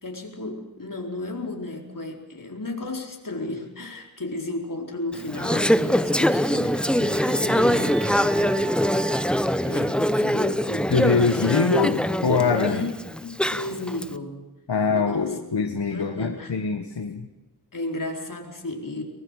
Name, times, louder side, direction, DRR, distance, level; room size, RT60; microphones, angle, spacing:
voice 1, 0.0-8.9 9.6-10.9 11.3-11.6 12.7-12.9 13.2-14.5 14.9-15.4 15.9-16.5 17.7-19.0, left 2 dB, 50° left, 2 dB, 4.5 m, -34 dB
Conversation / Chatter, 5.1-14.0, equal, ahead, 0.9 m, -23 dB
sound 1, 6.2-10.5, right 8 dB, 70° right, 1.8 m, -39 dB
voice 2, 10.9-12.8 14.7-17.3, left 5 dB, 80° left, 5 dB, 1.7 m, -23 dB
23.5 x 21.0 x 6.6 m, 1.1 s
wide cardioid pair, 55°, 41 cm